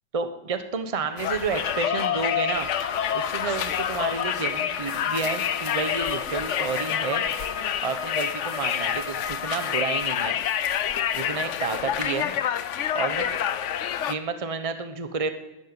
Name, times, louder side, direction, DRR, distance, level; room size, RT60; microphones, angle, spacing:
voice 1, 0.1-2.7 3.1-7.2 7.8-10.4 11.1-12.3 12.9-13.3 14.1-15.3, right 5 dB, 25° right, 8 dB, 0.9 m, -30 dB
Conversation, 1.2-14.1, left 9 dB, 70° left, 0.6 m, -28 dB
Bowed string instrument, 1.6-10.2, left 3 dB, 55° left, 1.9 m, -37 dB
sound 1, 4.8-5.2 5.9-6.6 7.3-7.6 8.3-8.8 9.5-9.9 10.4-10.5, right 1 dB, 50° right, 5.9 m, -51 dB
12.5 x 11.5 x 9.9 m, 1.0 s
omnidirectional pair, 2.1 m